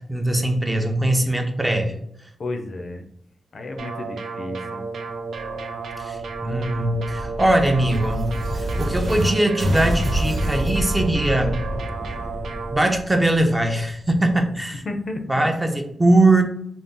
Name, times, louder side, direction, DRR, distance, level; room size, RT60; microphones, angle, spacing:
voice 1, 0.0-2.0 6.0-8.3 8.8-11.6 12.7-14.8 15.3-16.4, right 1 dB, 15° right, 4 dB, 0.5 m, -21 dB
voice 2, 2.4-3.1 3.5-4.8 14.8-15.2, left 2 dB, 55° left, 4 dB, 0.4 m, -32 dB
sound 1, 3.8-12.8, right 4 dB, 80° right, 0.3 m, -32 dB
sound 2, 5.9-9.3 9.6-14.3, equal, 60° right, 1.0 m, -27 dB
2.5 x 2.0 x 3.6 m, 0.72 s
cardioid pair, 80°, 0 cm